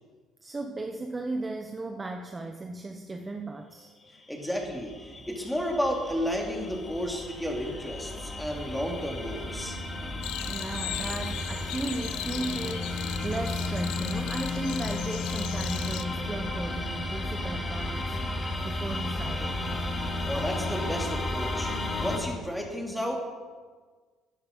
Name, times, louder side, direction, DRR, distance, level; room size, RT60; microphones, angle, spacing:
voice 1, 0.4-3.9 10.4-19.7, right 2 dB, 20° right, 4 dB, 0.9 m, -36 dB
voice 2, 4.3-9.8 20.3-23.3, equal, ahead, 0 dB, 2.8 m, -32 dB
sound 1, 4.4-22.2, left 2 dB, 25° left, 2.3 m, -33 dB
sound 2, 10.2-16.0, left 13 dB, 85° left, 0.7 m, -38 dB
14.0 x 10.0 x 5.4 m, 1.5 s
cardioid pair, 105°, 0 cm